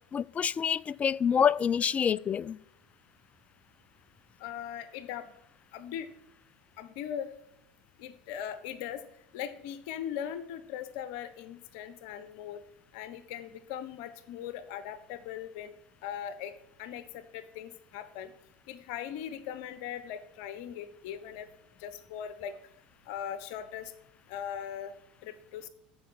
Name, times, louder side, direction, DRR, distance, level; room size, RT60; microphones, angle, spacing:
voice 1, 0.1-2.6, left 7 dB, 30° left, 0.4 m, -27 dB
voice 2, 4.4-5.3 5.7-6.1 6.8-7.3 8.0-9.0 9.3-12.6 12.9-15.7 16.0-16.5 16.8-18.3 18.7-21.5 21.8-22.6 23.1-23.9 24.3-24.9 25.2-25.7, left 9 dB, 60° left, 1.1 m, -39 dB
14.0 x 5.6 x 7.3 m
hypercardioid pair, 75°, 5 cm